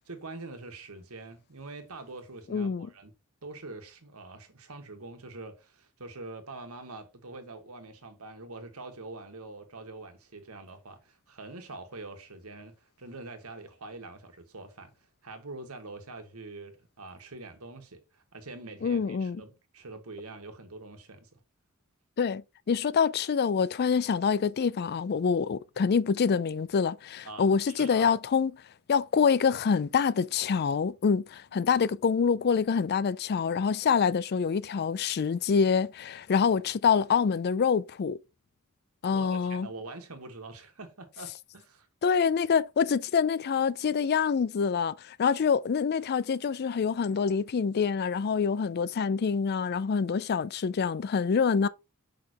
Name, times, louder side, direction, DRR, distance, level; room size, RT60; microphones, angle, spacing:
voice 1, 0.0-3.1 3.4-14.9 15.2-21.4 27.2-28.1 39.1-41.9, right 3 dB, 85° right, 1.6 m, -44 dB
voice 2, 2.5-2.9 18.8-19.4 22.2-22.4 22.7-28.5 28.9-38.2 39.0-39.7 42.0-51.7, left 6 dB, 50° left, 0.4 m, -26 dB
6.6 x 5.8 x 3.0 m
head